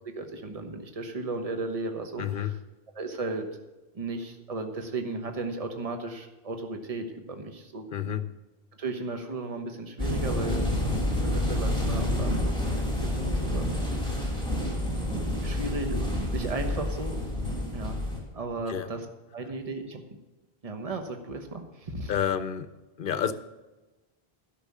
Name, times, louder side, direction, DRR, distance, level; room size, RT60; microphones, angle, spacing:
voice 1, 0.0-2.6 2.9-3.5 3.9-8.1 8.8-10.7 11.2-14.5 15.4-17.2 17.7-18.0 18.3-19.1 19.3-20.1 20.6-22.1, right 3 dB, 35° right, 5 dB, 1.2 m, -35 dB
voice 2, 2.2-2.5 7.9-8.2 18.7-18.9 22.1-22.7 23.0-23.3, left 9 dB, 60° left, 13 dB, 0.9 m, -29 dB
sound 1, 10.0-18.2, left 1 dB, 5° left, 3.0 m, -28 dB
12.0 x 6.1 x 8.5 m, 1.1 s
omnidirectional pair, 1.0 m